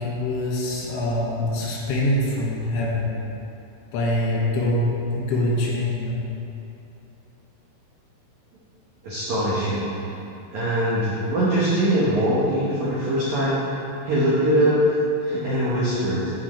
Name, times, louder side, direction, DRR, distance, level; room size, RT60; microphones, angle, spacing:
voice 1, 0.0-3.1 3.9-6.2, left 1 dB, 85° left, -4 dB, 3.8 m, -24 dB
voice 2, 9.0-10.2 10.5-13.7 14.0-16.3, right 1 dB, 80° right, -8 dB, 1.7 m, -22 dB
14.5 x 5.2 x 3.2 m, 2.8 s
omnidirectional pair, 5.3 m